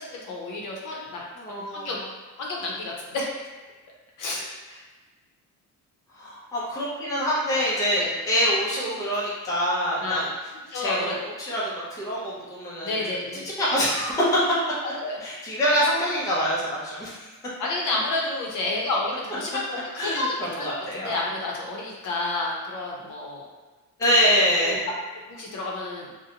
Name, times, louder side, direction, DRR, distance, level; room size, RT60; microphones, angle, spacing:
voice 1, 0.0-2.0 2.4-3.3 4.2-4.8 7.9-8.2 10.0-10.2 10.7-11.2 12.8-13.5 15.0-15.2 17.6-23.5 24.6-24.8 25.3-26.1, left 2 dB, 65° left, -3 dB, 0.7 m, -30 dB
voice 2, 1.4-2.0 6.2-10.3 10.7-11.1 11.4-13.0 13.6-14.4 15.2-17.1 20.0-21.1 24.0-24.8, equal, 10° left, -7 dB, 0.5 m, -25 dB
2.6 x 2.1 x 2.7 m, 1.3 s
cardioid pair, 160°, 33 cm